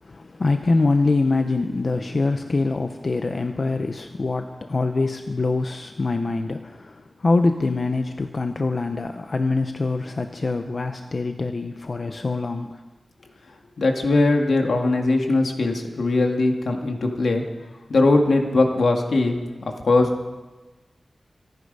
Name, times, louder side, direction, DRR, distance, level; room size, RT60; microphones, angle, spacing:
voice 1, 0.0-12.8, left 3 dB, 50° left, 7 dB, 0.7 m, -24 dB
voice 2, 13.8-17.4 17.9-19.4 19.8-20.1, left 2 dB, 80° left, 3 dB, 2.0 m, -20 dB
26.0 x 9.6 x 5.5 m, 1.2 s
wide cardioid pair, 100°, 0 cm